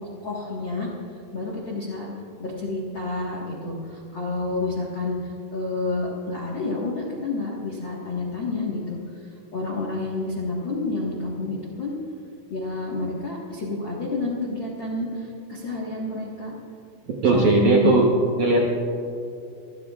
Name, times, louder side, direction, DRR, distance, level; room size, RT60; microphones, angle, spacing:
voice 1, 0.0-0.9 1.3-2.1 2.4-11.9 12.5-16.5 17.3-18.0, left 3 dB, 70° left, -4 dB, 1.1 m, -29 dB
voice 2, 17.2-18.1 18.4-18.7, right 3 dB, 70° right, -2 dB, 1.8 m, -18 dB
26.0 x 15.5 x 2.5 m, 2.6 s
omnidirectional pair, 5.0 m